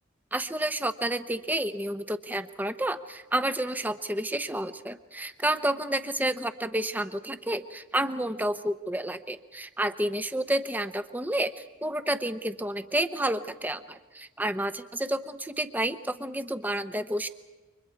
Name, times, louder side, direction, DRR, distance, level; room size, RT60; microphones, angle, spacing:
voice 1, 0.3-17.3, right 1 dB, 10° right, 11 dB, 0.9 m, -30 dB
30.0 x 25.0 x 4.7 m, 1.3 s
head